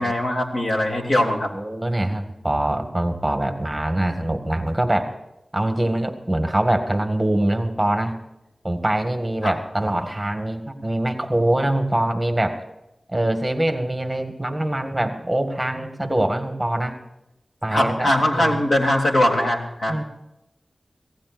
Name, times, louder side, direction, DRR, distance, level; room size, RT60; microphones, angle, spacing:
voice 1, 0.0-1.5 9.4-9.5 17.7-20.0, left 1 dB, 60° left, 1 dB, 3.4 m, -21 dB
voice 2, 1.5-5.1 5.5-8.1 8.6-12.6 13.1-17.0 17.6-18.6 19.9-20.0, right 1 dB, 10° right, 6 dB, 1.9 m, -23 dB
25.5 x 17.0 x 2.6 m, 0.91 s
wide cardioid pair, 95°, 0 cm